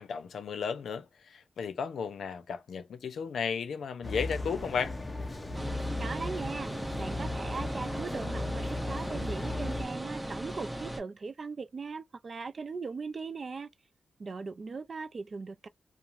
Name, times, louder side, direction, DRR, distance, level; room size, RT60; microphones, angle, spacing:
voice 1, 0.0-5.0, left 6 dB, 85° left, 0.5 m, -34 dB
sound 1, 4.0-9.8, left 2 dB, 15° left, 0.6 m, -37 dB
sound 2, 5.5-11.0, right 1 dB, 15° right, 0.8 m, -37 dB
voice 2, 6.0-13.7 14.2-15.7, right 4 dB, 45° right, 0.3 m, -39 dB
3.0 x 2.1 x 2.5 m
wide cardioid pair, 120°, 0 cm